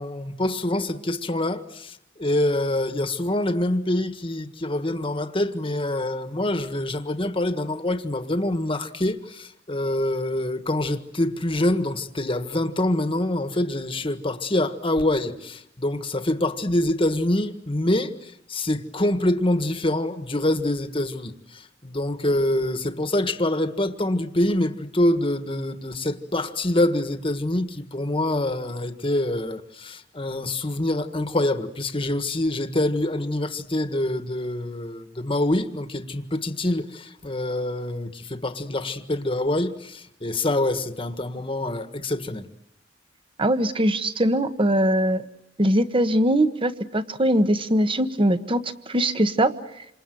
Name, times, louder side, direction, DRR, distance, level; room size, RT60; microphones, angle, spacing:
voice 1, 0.0-42.4, left 1 dB, 30° left, 1.6 m, -25 dB
voice 2, 43.4-45.3 45.6-49.5, right 1 dB, 30° right, 1.3 m, -21 dB
28.0 x 27.5 x 7.7 m
head